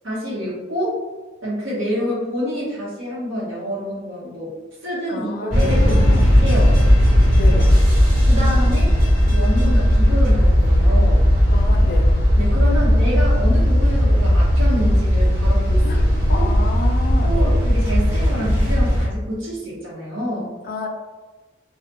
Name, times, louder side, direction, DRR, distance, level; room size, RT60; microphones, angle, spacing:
voice 1, 0.0-1.0 1.4-4.5 4.8-6.7 8.3-8.9 9.3-11.2 12.4-16.0 16.3-16.5 17.2-20.5, equal, 90° right, -6 dB, 1.0 m, -27 dB
voice 2, 5.1-6.3 7.4-7.7 11.5-12.1 15.8-17.5 20.7-20.9, left 3 dB, 50° left, 4 dB, 0.3 m, -30 dB
sound 1, 5.5-19.1, equal, 40° right, 1.1 m, -16 dB
2.3 x 2.2 x 2.9 m, 1.3 s
head